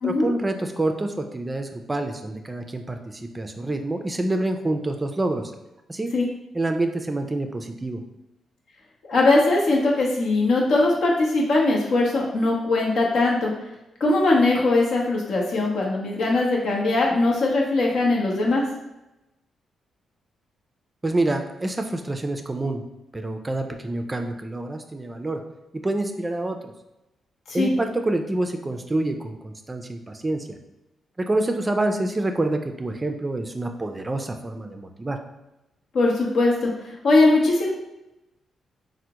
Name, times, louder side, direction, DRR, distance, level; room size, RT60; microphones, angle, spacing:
voice 1, 0.0-5.5 5.9-6.1 6.5-8.0 21.0-22.8 23.1-25.4 25.8-26.7 27.5-30.6 31.2-35.2, right 2 dB, 25° right, 5 dB, 0.4 m, -27 dB
voice 2, 9.1-13.5 14.0-18.7 27.5-27.7 35.9-37.7, left 2 dB, 70° left, -2 dB, 0.7 m, -20 dB
3.4 x 2.0 x 2.9 m, 0.95 s
cardioid pair, 65°, 0 cm